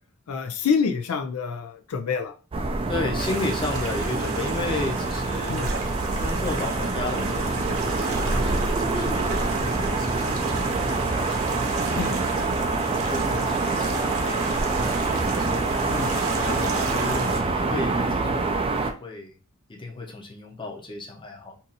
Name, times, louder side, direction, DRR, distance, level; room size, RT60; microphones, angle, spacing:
voice 1, 0.3-2.3 5.5-5.7 12.0-12.1 15.9-16.1, left 6 dB, 85° left, 6 dB, 0.5 m, -27 dB
sound 1, 2.5-18.9, right 3 dB, 25° right, 0.4 m, -26 dB
voice 2, 2.9-5.7 6.2-12.0 12.9-15.7 16.2-19.3 19.7-21.5, left 3 dB, 25° left, -1 dB, 0.7 m, -34 dB
sound 2, 3.2-17.4, right 3 dB, 70° right, 0.7 m, -34 dB
2.7 x 2.6 x 3.9 m, 0.36 s
head